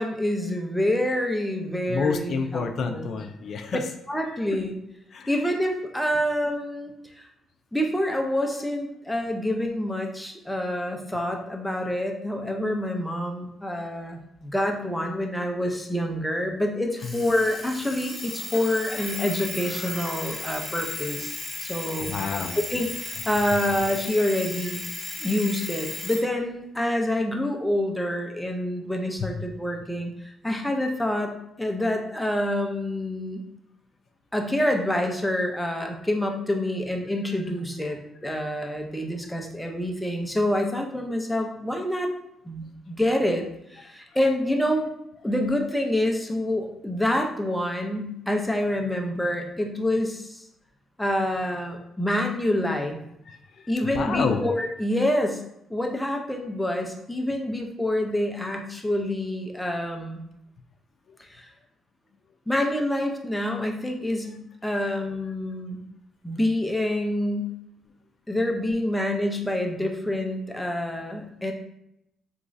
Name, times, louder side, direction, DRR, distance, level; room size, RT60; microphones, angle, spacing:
voice 1, 0.0-3.1 4.1-4.8 5.3-7.2 7.7-22.1 22.7-24.8 25.2-33.4 34.3-42.1 42.4-44.9 45.2-50.4 51.0-53.0 53.7-55.4 55.7-60.2 61.2-61.5 62.5-65.8 66.2-67.5 68.3-71.5, left 1 dB, 5° left, 2 dB, 0.6 m, -27 dB
voice 2, 1.9-3.8 4.3-4.6 5.1-5.3 17.0-17.2 22.0-22.6 29.2-29.3 37.9-38.0 38.3-38.5 53.3-54.4, left 5 dB, 60° left, 6 dB, 0.4 m, -29 dB
Alarm, 17.0-26.3, left 2 dB, 30° left, 0.9 m, -35 dB
3.7 x 3.0 x 2.5 m, 0.80 s
cardioid pair, 90°, 0 cm